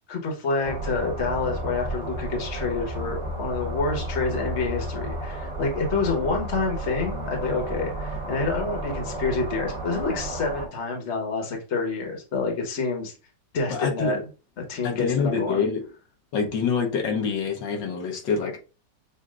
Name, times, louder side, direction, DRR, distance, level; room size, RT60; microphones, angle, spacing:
voice 1, 0.1-13.1 13.5-14.2 14.6-15.6, left 3 dB, 45° left, 1.3 m, -28 dB
sound 1, 0.6-10.7, right 1 dB, 35° right, 1.6 m, -32 dB
voice 2, 13.7-14.2 14.8-15.8 16.3-18.6, left 6 dB, 85° left, 1.6 m, -26 dB
7.0 x 2.6 x 2.4 m
omnidirectional pair, 1.9 m